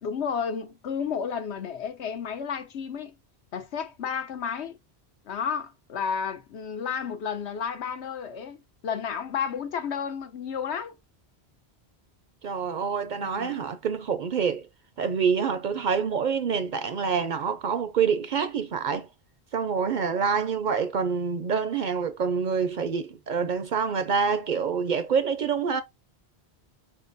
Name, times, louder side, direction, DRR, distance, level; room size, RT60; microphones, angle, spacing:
voice 1, 0.0-3.1 3.5-4.8 5.2-10.9 13.3-13.6, left 7 dB, 85° left, 1.1 m, -32 dB
voice 2, 12.4-14.7 15.0-19.1 19.5-25.8, right 6 dB, 55° right, 0.6 m, -26 dB
5.5 x 3.7 x 2.6 m
omnidirectional pair, 1.1 m